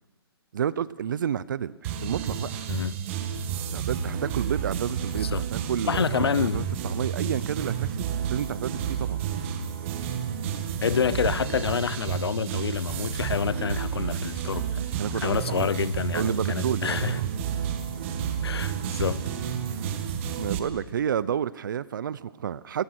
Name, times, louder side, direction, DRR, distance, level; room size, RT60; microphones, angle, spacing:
voice 1, 0.5-2.6 3.7-9.2 15.0-15.6 16.1-17.4 20.3-22.8, right 9 dB, 50° right, 0.9 m, -30 dB
sound 1, 1.8-20.6, right 8 dB, 30° right, 2.0 m, -31 dB
voice 2, 2.7-3.0 5.1-5.5 5.8-6.7 10.8-14.9 15.2-17.2 18.4-19.2, left 6 dB, 75° left, 0.9 m, -28 dB
29.0 x 20.0 x 6.4 m
hypercardioid pair, 155°, 13 cm